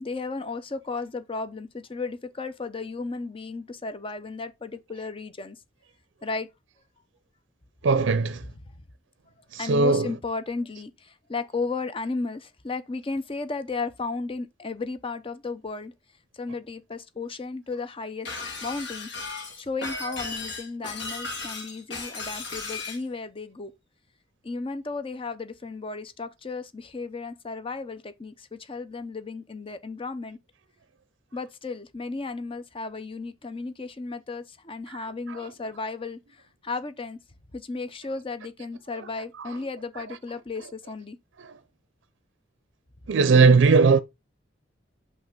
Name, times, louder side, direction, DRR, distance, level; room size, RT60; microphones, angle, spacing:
voice 1, 0.0-5.6 6.2-6.5 8.4-8.7 9.6-15.9 16.3-18.3 18.6-19.1 19.6-23.7 24.4-30.4 31.3-37.2 37.5-41.2, left 3 dB, 30° left, 0.6 m, -34 dB
voice 2, 7.8-8.4 9.5-10.1 34.9-35.0 35.4-35.5 40.1-40.2 43.1-44.0, right 4 dB, 75° right, 0.5 m, -19 dB
Shatter, 18.3-23.0, left 3 dB, 65° left, 2.0 m, -35 dB
5.6 x 3.3 x 5.2 m
head